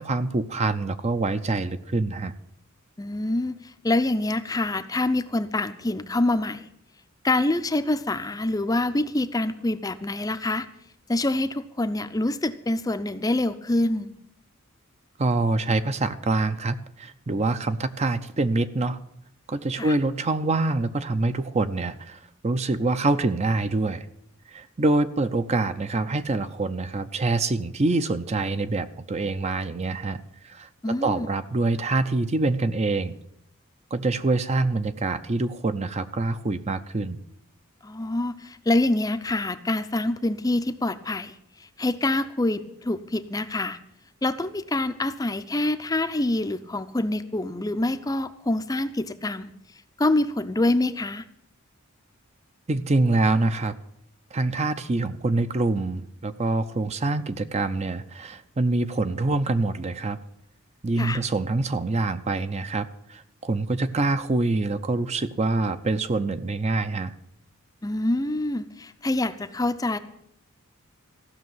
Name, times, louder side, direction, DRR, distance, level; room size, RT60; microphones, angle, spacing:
voice 1, 0.0-2.3 15.2-19.0 19.5-24.0 24.5-33.2 33.9-37.2 52.7-53.7 54.3-60.2 60.8-67.1, right 2 dB, 30° right, 11 dB, 0.5 m, -25 dB
voice 2, 3.0-6.7 7.2-10.7 11.1-14.1 19.8-19.9 30.8-31.3 37.8-43.8 44.2-49.5 50.0-51.2 61.0-61.2 67.8-70.0, left 2 dB, 15° left, 11 dB, 0.5 m, -26 dB
15.0 x 6.4 x 9.4 m, 0.73 s
head